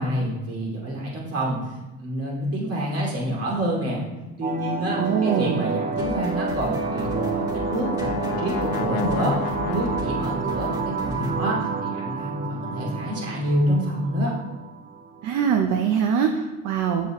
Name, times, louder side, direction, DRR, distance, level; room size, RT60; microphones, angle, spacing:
voice 1, 0.0-4.1 4.4-14.3, equal, 45° right, -3 dB, 2.5 m, -27 dB
sound 1, 4.4-15.4, right 5 dB, 25° right, 0.6 m, -29 dB
voice 2, 5.0-5.7 15.2-17.1, right 7 dB, 70° right, 4 dB, 0.7 m, -23 dB
sound 2, 5.9-11.3, left 1 dB, 10° right, 2.4 m, -38 dB
Brass instrument, 6.4-10.7, left 10 dB, 80° left, 0.5 m, -33 dB
7.0 x 6.9 x 3.0 m, 1.1 s
cardioid pair, 115°, 33 cm